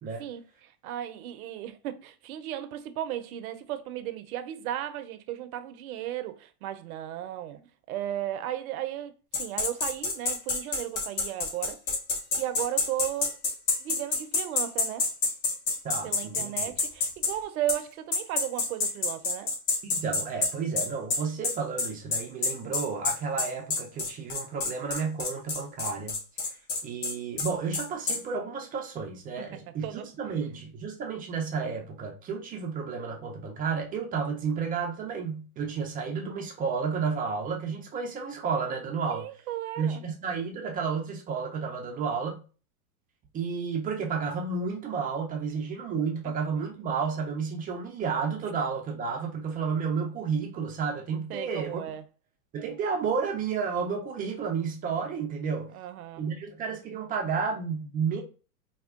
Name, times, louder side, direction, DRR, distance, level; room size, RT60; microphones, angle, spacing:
voice 1, 0.2-7.6 7.9-11.8 12.4-13.4 13.8-15.1 16.0-19.5 29.5-30.1 39.1-40.0 51.3-52.0 55.7-56.3, right 12 dB, 65° right, 0.6 m, -35 dB
sound 1, 9.3-17.3 17.7-17.8 18.1-28.2, left 3 dB, 40° left, 0.8 m, -28 dB
voice 2, 15.8-16.5 19.8-26.1 26.8-39.3 39.8-42.4 43.3-51.8 52.5-55.7 56.2-58.2, right 5 dB, 20° right, 0.4 m, -31 dB
4.3 x 2.3 x 2.3 m
hypercardioid pair, 105°, 46 cm